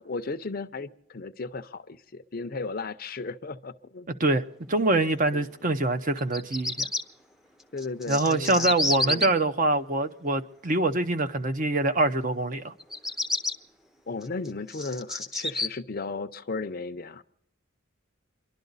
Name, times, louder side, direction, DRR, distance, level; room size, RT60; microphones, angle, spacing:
voice 1, 0.0-4.1 5.3-5.4 7.7-9.3 14.1-17.2, left 3 dB, 45° left, 0.6 m, -35 dB
voice 2, 4.2-6.9 8.1-12.7, right 2 dB, 40° right, 0.7 m, -25 dB
Bird vocalization bird call bird song, 6.2-7.0 7.8-9.3 12.8-13.5 14.2-15.7, left 2 dB, ahead, 0.6 m, -29 dB
28.0 x 11.5 x 4.0 m
head